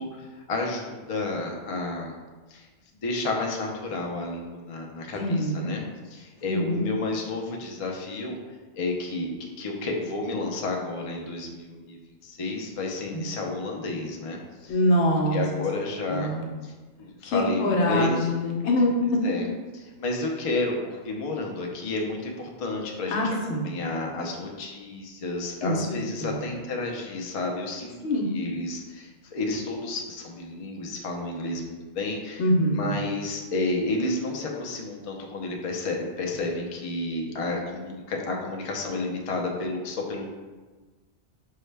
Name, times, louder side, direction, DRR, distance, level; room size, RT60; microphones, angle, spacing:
voice 1, 0.0-2.2 2.5-2.7 3.0-8.4 8.7-12.0 12.2-14.8 15.0-16.4 16.6-18.2 19.2-19.5 19.7-27.9 28.2-40.2, left 2 dB, 50° left, 0 dB, 0.4 m, -31 dB
voice 2, 5.2-5.7 6.5-6.9 13.1-13.2 14.7-15.4 16.1-16.4 17.2-18.9 23.1-23.6 25.6-25.8 26.2-26.4 28.0-28.3 32.4-32.9, left 1 dB, 75° left, -1 dB, 1.0 m, -24 dB
5.5 x 2.1 x 3.2 m, 1.3 s
omnidirectional pair, 1.2 m